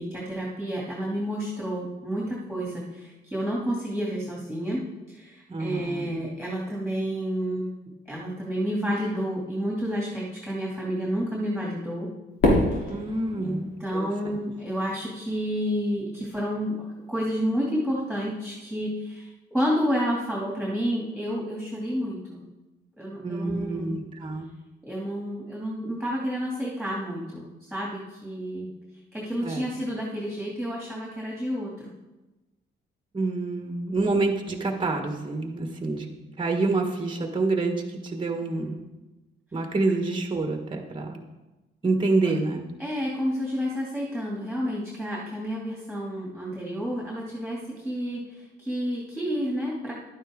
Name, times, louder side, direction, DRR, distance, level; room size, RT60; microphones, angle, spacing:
voice 1, 0.0-4.8 5.1-7.8 8.1-12.1 13.4-22.4 23.0-24.0 24.8-28.7 29.1-31.9 38.5-38.7 42.8-49.9, equal, ahead, -5 dB, 2.7 m, -30 dB
voice 2, 5.5-6.2 12.9-14.1 23.2-24.5 29.4-29.7 33.1-36.1 36.4-38.8 39.5-41.2 41.8-42.6, right 3 dB, 25° right, 3 dB, 1.5 m, -27 dB
Fireworks, 12.4-14.7, left 1 dB, 75° left, 3.5 m, -26 dB
11.0 x 9.5 x 3.8 m, 1.1 s
cardioid pair, 90°, 20 cm